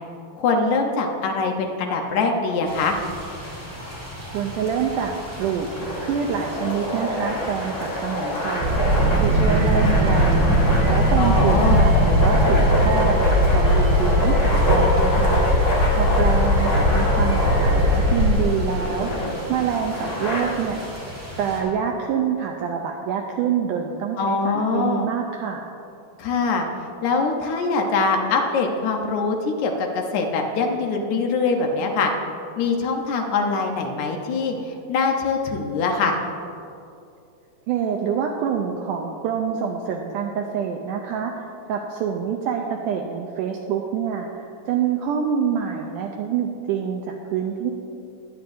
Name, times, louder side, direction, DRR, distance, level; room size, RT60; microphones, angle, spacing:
voice 1, 0.3-3.0 11.2-11.9 24.2-25.1 26.2-26.7 27.0-32.1 32.6-36.2, left 4 dB, 75° left, 2 dB, 1.8 m, -23 dB
sound 1, 2.6-21.6, equal, 5° right, 2.0 m, -37 dB
voice 2, 4.3-5.7 6.0-8.8 9.2-10.5 10.9-13.2 13.5-15.4 15.9-19.1 19.5-20.8 21.3-25.7 37.7-47.7, right 7 dB, 85° right, 2 dB, 1.8 m, -26 dB
sound 2, 5.7-20.4, left 1 dB, 40° left, 1.5 m, -26 dB
sound 3, 8.6-18.3, equal, 50° right, 3.9 m, -19 dB
21.0 x 8.3 x 2.6 m, 2.6 s
omnidirectional pair, 4.2 m